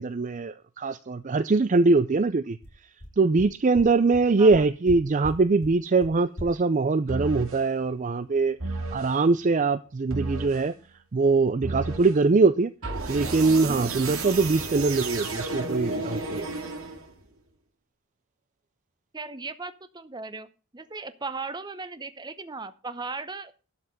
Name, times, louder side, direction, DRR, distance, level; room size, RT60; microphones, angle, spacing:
voice 1, 0.0-2.6 3.2-10.7 11.1-12.7 13.1-16.5, right 3 dB, 35° right, 14 dB, 0.4 m, -22 dB
sound 1, 2.3-2.4 2.6-2.7 3.0-3.1 3.4-3.5 3.7-3.8 4.1-4.2 4.5-4.9 5.2-5.3 5.6-5.7 6.0-6.1 6.4-6.5, equal, 60° left, 6.0 m, -36 dB
sound 2, 7.1-7.6 8.6-9.1 10.1-10.7 11.6-12.2 12.8-17.2, right 3 dB, 70° right, 2.2 m, -32 dB
voice 2, 19.1-20.5 20.7-23.5, right 4 dB, 20° right, 12 dB, 0.8 m, -37 dB
12.0 x 5.9 x 6.7 m, 0.36 s
head